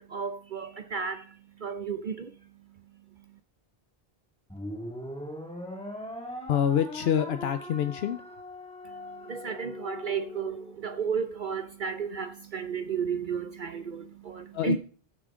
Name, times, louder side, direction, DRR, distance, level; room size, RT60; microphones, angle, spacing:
voice 1, 0.0-3.4 8.8-14.8, right 6 dB, 55° right, 0.8 m, -34 dB
sound 1, 4.5-11.0, left 1 dB, 5° left, 2.2 m, -41 dB
voice 2, 6.5-8.2 14.5-14.8, left 9 dB, 80° left, 0.9 m, -26 dB
15.0 x 8.7 x 3.7 m
omnidirectional pair, 1.0 m